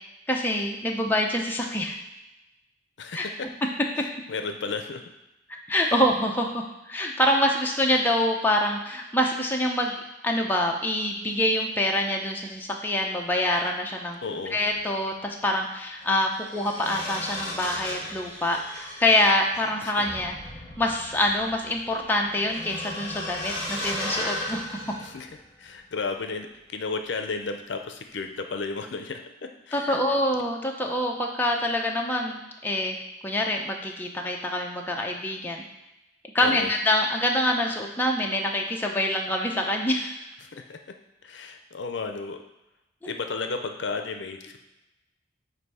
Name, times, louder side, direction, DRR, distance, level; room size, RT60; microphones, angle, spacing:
voice 1, 0.3-1.9 3.1-3.3 5.7-9.9 10.2-14.2 14.5-20.3 20.8-24.9 29.7-33.0 33.2-35.6 36.3-40.2 43.0-43.1, left 1 dB, 10° left, 0 dB, 0.6 m, -25 dB
voice 2, 3.0-3.5 4.3-5.0 5.9-6.0 14.2-14.6 19.8-19.9 25.0-25.3 25.6-29.2 29.7-30.0 36.4-36.7 40.5-40.8 41.2-42.4 43.0-44.6, left 4 dB, 70° left, 6 dB, 0.5 m, -33 dB
sound 1, 14.6-14.8 16.0-25.7 26.0-26.3, left 1 dB, 30° left, 1.9 m, -36 dB
8.0 x 2.7 x 5.4 m, 0.99 s
head